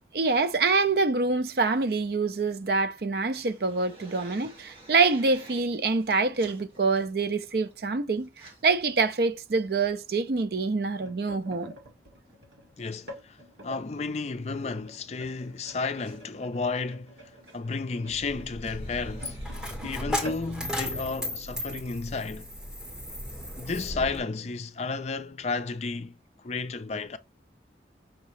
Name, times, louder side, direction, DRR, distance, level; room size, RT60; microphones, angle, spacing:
voice 1, 0.1-8.3 8.6-11.7, right 4 dB, 55° right, 0.5 m, -25 dB
sound 1, 3.3-5.7 5.9-7.7 8.2-8.6 9.1-9.2 9.5-10.2 12.3-12.5 14.3-14.4 14.7-14.8 14.9-15.0 15.4-16.2 17.3-17.6 18.4-21.9, right 1 dB, 30° right, 1.5 m, -48 dB
sound 2, 10.5-13.8 14.5-21.8 22.2-22.4 22.6-22.9 23.7-23.8, left 1 dB, 80° right, 1.6 m, -48 dB
voice 2, 12.8-13.4 13.6-19.4 19.8-22.5 23.6-26.1 26.4-27.2, left 4 dB, 35° left, 0.4 m, -32 dB
Coin (dropping), 18.1-24.2, left 1 dB, 5° right, 1.5 m, -36 dB
5.7 x 2.8 x 3.1 m
head